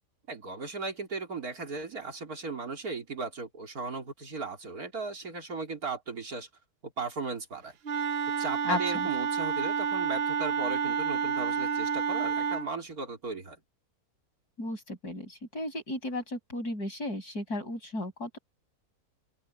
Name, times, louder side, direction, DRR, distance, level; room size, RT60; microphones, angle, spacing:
voice 1, 0.3-6.5 6.8-7.8 8.4-13.6, right 4 dB, 70° right, 3.7 m, -37 dB
Wind instrument woodwind instrument, 7.8-12.7, right 6 dB, 55° right, 0.8 m, -29 dB
voice 2, 8.6-9.1 14.6-18.4, left 1 dB, 85° left, 7.0 m, -34 dB
open air
omnidirectional pair, 1.6 m